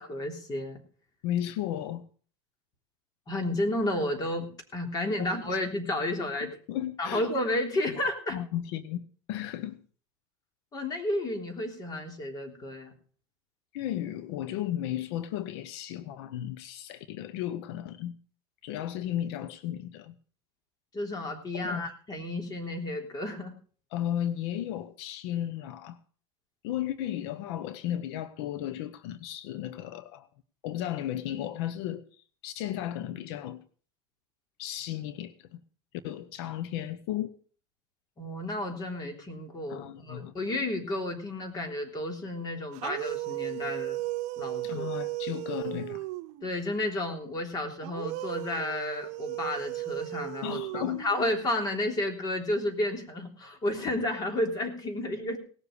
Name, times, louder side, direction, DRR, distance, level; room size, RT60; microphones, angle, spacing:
voice 1, 0.1-0.8 3.3-6.5 7.0-8.4 10.7-12.9 20.9-23.5 38.2-44.0 44.4-44.9 46.4-55.4, left 1 dB, 30° left, 3.4 m, -32 dB
voice 2, 1.2-2.0 5.2-5.3 6.4-7.3 8.3-9.0 9.3-9.8 13.7-18.1 18.6-20.1 21.5-21.9 23.9-26.0 26.6-30.3 30.6-32.1 32.4-33.6 34.6-35.6 36.0-37.4 39.7-40.3 44.6-46.1 50.4-51.0, left 11 dB, 75° left, 0.8 m, -34 dB
sound 1, 42.7-46.5 47.8-51.4, right 18 dB, 60° right, 0.8 m, -35 dB
18.0 x 7.1 x 6.6 m
supercardioid pair, 130°, 14 cm